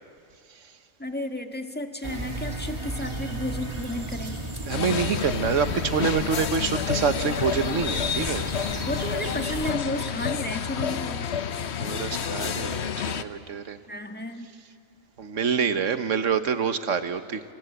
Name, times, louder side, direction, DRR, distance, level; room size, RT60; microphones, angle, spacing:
voice 1, 1.0-4.5 8.8-11.3 13.9-14.5, left 1 dB, 10° left, 5 dB, 1.5 m, -33 dB
sound 1, 2.0-9.7, right 1 dB, 20° right, 2.3 m, -34 dB
sound 2, 4.7-13.2, left 7 dB, 60° left, 1.1 m, -29 dB
voice 2, 4.7-8.5 11.8-13.8 15.2-17.4, right 6 dB, 70° right, 10 dB, 1.5 m, -26 dB
27.5 x 26.5 x 8.0 m, 2.5 s
omnidirectional pair, 1.3 m